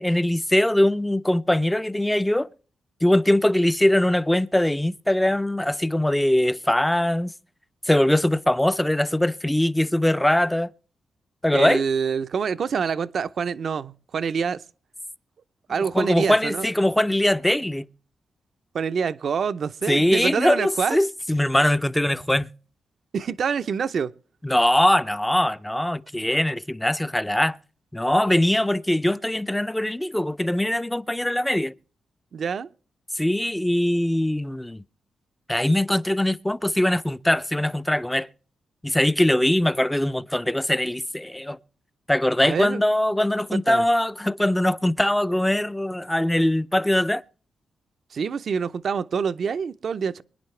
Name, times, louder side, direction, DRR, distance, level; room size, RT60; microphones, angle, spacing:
voice 1, 0.0-2.5 3.0-7.3 7.9-10.7 11.4-11.8 15.8-17.9 19.9-22.5 24.4-27.6 27.9-31.7 33.2-34.8 35.5-38.3 38.8-41.6 42.1-47.2, left 1 dB, 10° left, 0.5 m, -22 dB
voice 2, 11.5-14.6 15.7-16.7 18.7-21.1 23.1-24.1 32.3-32.7 42.4-42.8 43.5-43.8 48.1-50.2, right 6 dB, 65° right, 0.6 m, -26 dB
24.0 x 10.0 x 3.2 m
cardioid pair, 80°, 0 cm